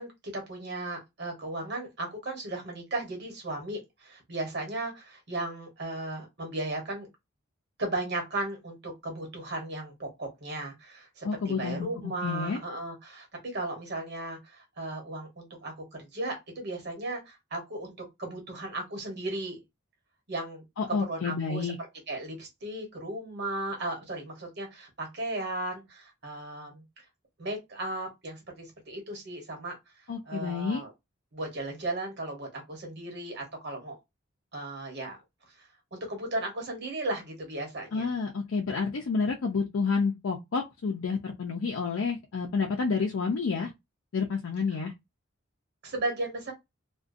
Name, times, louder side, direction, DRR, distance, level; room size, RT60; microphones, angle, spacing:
voice 1, 0.0-7.1 7.8-19.6 20.3-21.7 22.1-26.8 27.4-29.8 30.2-30.9 31.3-34.0 34.5-35.2 35.6-38.1 45.8-46.5, right 2 dB, 55° right, 1.1 m, -36 dB
voice 2, 11.2-12.6 20.8-21.8 30.1-30.8 37.9-43.7 44.1-44.9, left 5 dB, 75° left, 0.4 m, -29 dB
2.4 x 2.2 x 2.4 m
head